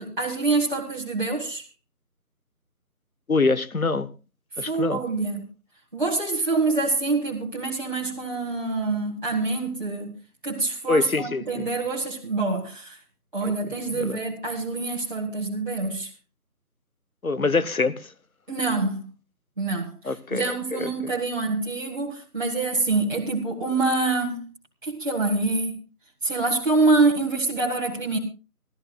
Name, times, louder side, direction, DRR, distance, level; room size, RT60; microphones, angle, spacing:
voice 1, 0.0-1.6 4.6-5.5 5.9-10.1 10.4-13.0 13.3-16.1 18.5-19.1 19.6-19.9 20.3-24.4 24.8-25.7 26.2-28.2, right 3 dB, 30° right, 1.9 m, -25 dB
voice 2, 3.3-4.1 4.6-5.0 10.9-11.7 13.4-14.2 17.2-18.1 20.0-21.1, left 3 dB, 60° left, 1.0 m, -25 dB
25.5 x 13.5 x 2.3 m
figure-of-eight pair, 170°, 47 cm